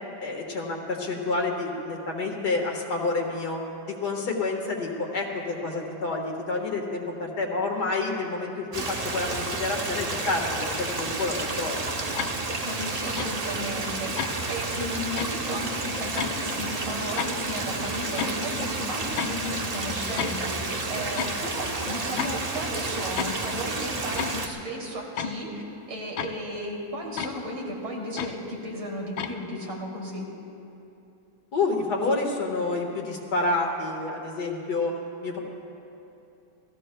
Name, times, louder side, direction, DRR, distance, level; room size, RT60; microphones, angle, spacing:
voice 1, 0.2-3.6 3.9-11.8 31.5-35.4, left 3 dB, 55° left, 1 dB, 2.1 m, -29 dB
Stream, 8.7-24.5, right 3 dB, 60° right, 0.4 m, -31 dB
clock ticking, 12.2-12.3 13.2-13.3 14.2-14.4 15.2-15.3 16.2-16.4 17.2-17.3 18.2-18.4 19.2-19.4 20.2-20.6 21.2-21.4 22.2-22.5 23.2-23.5 24.2-24.5 25.2-25.4 26.2-26.5 27.2-27.4 28.2-28.4 29.2-29.3, left 8 dB, 85° left, 1.5 m, -32 dB
voice 2, 12.6-30.3, equal, 90° right, -3 dB, 3.8 m, -34 dB
28.5 x 17.5 x 2.3 m, 2.8 s
omnidirectional pair, 2.1 m